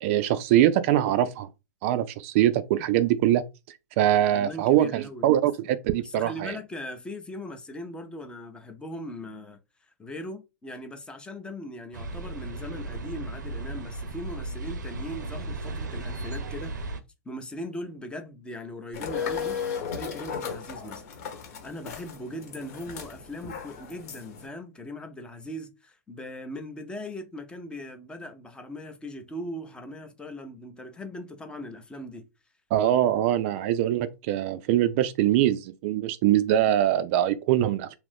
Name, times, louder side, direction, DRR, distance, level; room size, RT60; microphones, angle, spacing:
voice 1, 0.0-1.5 1.8-3.4 4.0-6.5 32.7-38.0, right 12 dB, 45° right, 0.4 m, -23 dB
voice 2, 4.3-5.3 6.0-9.6 10.0-16.8 17.3-21.1 21.6-32.3, left 1 dB, 10° left, 0.6 m, -39 dB
sound 1, 11.9-17.0, right 2 dB, 90° right, 0.6 m, -35 dB
sound 2, 18.9-24.5, left 7 dB, 60° left, 1.1 m, -35 dB
2.7 x 2.5 x 3.4 m
hypercardioid pair, 125°, 10 cm